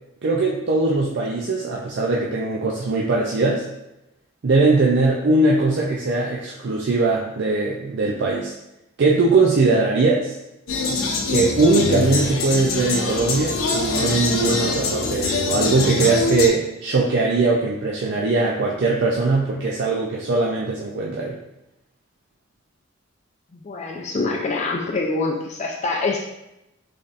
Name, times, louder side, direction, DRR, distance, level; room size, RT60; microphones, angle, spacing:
voice 1, 0.2-3.6 4.4-8.5 9.0-10.3 11.3-21.4, right 3 dB, 55° right, -2 dB, 0.4 m, -20 dB
sound 1, 10.7-16.5, left 3 dB, 85° left, 0.6 m, -23 dB
voice 2, 23.5-26.3, left 3 dB, 35° left, -1 dB, 0.4 m, -25 dB
4.0 x 3.3 x 2.4 m, 0.90 s
head